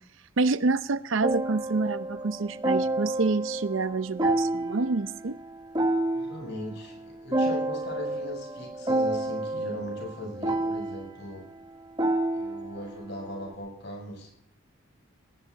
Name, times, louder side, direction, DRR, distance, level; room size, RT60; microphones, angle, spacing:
voice 1, 0.4-5.4, right 3 dB, 65° right, 14 dB, 0.6 m, -27 dB
sound 1, 1.2-13.5, right 1 dB, 20° right, 1.4 m, -30 dB
voice 2, 6.1-11.5 12.3-14.3, left 1 dB, 55° left, 1 dB, 6.8 m, -39 dB
18.5 x 17.0 x 4.1 m, 0.70 s
head